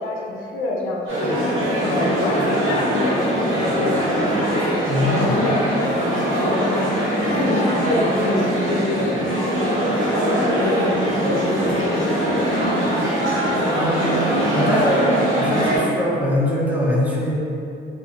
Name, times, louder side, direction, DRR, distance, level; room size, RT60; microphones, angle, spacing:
voice 1, 0.0-1.4 1.8-4.8 5.1-5.6 6.4-6.8 7.3-9.2 9.5-13.1, left 2 dB, 90° left, -2 dB, 0.5 m, -27 dB
sound 1, 1.1-15.8, equal, 90° right, 1.0 m, -21 dB
voice 2, 4.9-5.4 13.7-15.1 15.4-17.3, left 1 dB, 5° right, -6 dB, 0.7 m, -22 dB
2.5 x 2.2 x 3.6 m, 2.7 s
cardioid pair, 90°, 20 cm